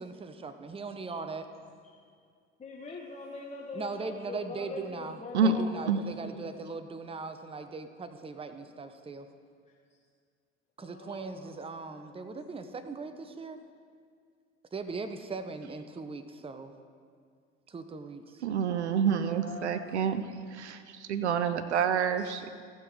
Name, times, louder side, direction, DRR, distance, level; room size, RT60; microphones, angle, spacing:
voice 1, 0.0-1.5 3.7-9.3 10.8-13.6 14.7-16.7 17.7-18.4, right 4 dB, 15° right, 8 dB, 0.7 m, -39 dB
voice 2, 2.6-5.9 6.2-6.4 10.8-12.1 19.2-20.1 20.9-21.0 22.2-22.4, left 3 dB, 20° left, -2 dB, 1.3 m, -44 dB
voice 3, 18.4-20.2 20.5-22.5, right 6 dB, 85° right, 10 dB, 0.5 m, -28 dB
15.0 x 6.3 x 4.6 m, 2.1 s
hypercardioid pair, 60°, 33 cm